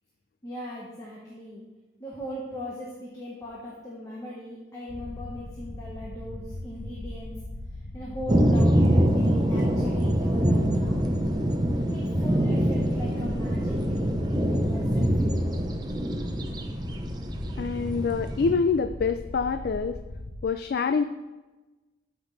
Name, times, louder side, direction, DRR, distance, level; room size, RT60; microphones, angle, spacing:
voice 1, 0.4-1.6 2.0-7.3 7.9-11.2 11.9-15.5, equal, 20° left, -5 dB, 1.3 m, -39 dB
sound 1, 4.9-20.5, left 1 dB, 80° left, 0.7 m, -39 dB
sound 2, 8.3-18.5, equal, 25° right, 0.8 m, -24 dB
voice 2, 17.6-20.0 20.4-21.0, left 5 dB, 60° left, 10 dB, 0.3 m, -26 dB
13.5 x 6.0 x 3.3 m, 1.2 s
head